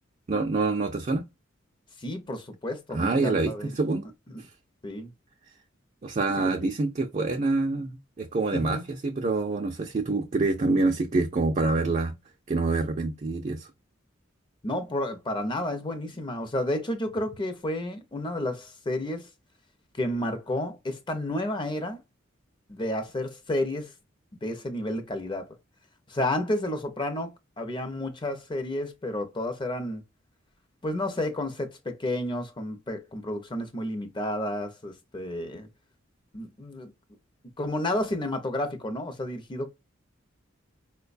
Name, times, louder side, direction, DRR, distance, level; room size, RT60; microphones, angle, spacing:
voice 1, 0.3-1.2 2.9-4.1 6.0-12.1 12.5-13.7, right 3 dB, 35° right, 0.4 m, -26 dB
voice 2, 2.0-3.7 4.8-5.1 6.4-6.7 8.5-8.8 14.6-19.3 19.9-22.0 22.7-23.9 24.4-25.5 26.1-30.0 30.8-35.7 36.3-36.9 37.6-39.7, left 1 dB, 25° left, 0.6 m, -31 dB
4.5 x 2.2 x 2.4 m
head